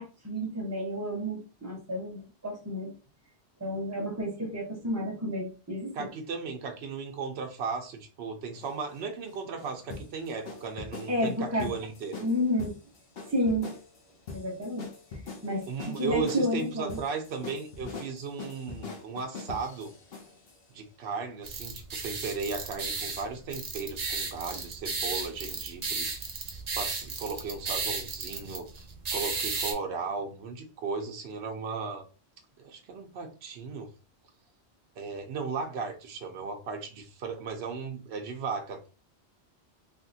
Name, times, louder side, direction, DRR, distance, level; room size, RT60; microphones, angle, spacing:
voice 1, 0.0-2.9 3.6-6.1 11.1-11.7 12.2-12.7 13.3-13.7 14.3-14.9 15.4-17.0, equal, 15° right, -2 dB, 1.1 m, -31 dB
voice 2, 5.9-12.3 15.7-19.9 20.7-26.1 26.7-32.1 32.6-33.9 35.0-38.9, right 4 dB, 70° right, 3 dB, 0.9 m, -36 dB
sound 1, 8.5-20.6, left 4 dB, 60° left, 1.0 m, -43 dB
sound 2, 21.4-29.7, right 4 dB, 45° right, 0.6 m, -34 dB
3.4 x 2.8 x 2.7 m, 0.34 s
omnidirectional pair, 1.1 m